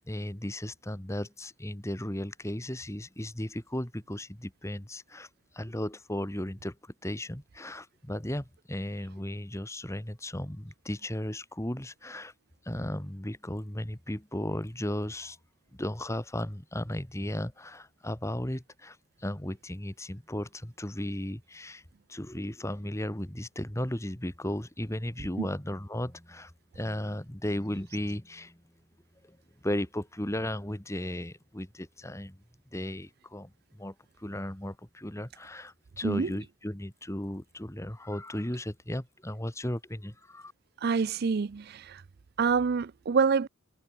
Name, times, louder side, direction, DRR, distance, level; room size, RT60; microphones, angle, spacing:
voice 1, 0.1-5.3 5.5-12.3 12.6-15.4 15.7-21.8 22.1-28.6 29.2-29.4 29.6-32.4 32.7-40.5, left 1 dB, 15° left, 1.9 m, -35 dB
voice 2, 36.0-36.3 40.8-42.0 42.4-43.5, right 5 dB, 50° right, 0.4 m, -27 dB
head